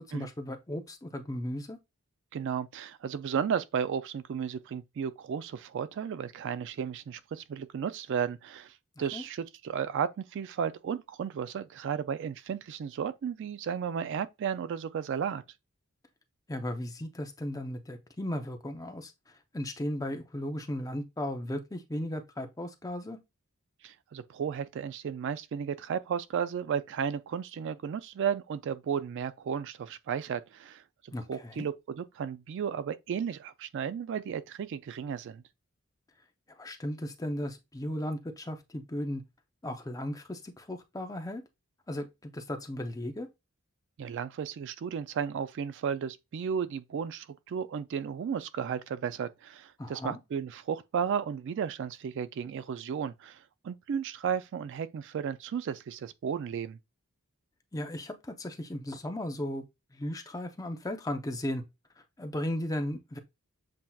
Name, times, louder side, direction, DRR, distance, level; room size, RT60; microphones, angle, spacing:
voice 1, 0.1-1.8 9.1-9.2 16.5-19.1 19.5-23.2 31.1-31.7 36.6-39.2 39.6-41.4 41.9-43.3 49.8-50.2 57.7-59.6 59.9-61.6 62.2-63.2, left 1 dB, 15° left, 0.5 m, -36 dB
voice 2, 2.3-15.4 23.8-35.4 44.0-56.8, right 7 dB, 55° right, 0.3 m, -34 dB
7.5 x 2.8 x 2.3 m
head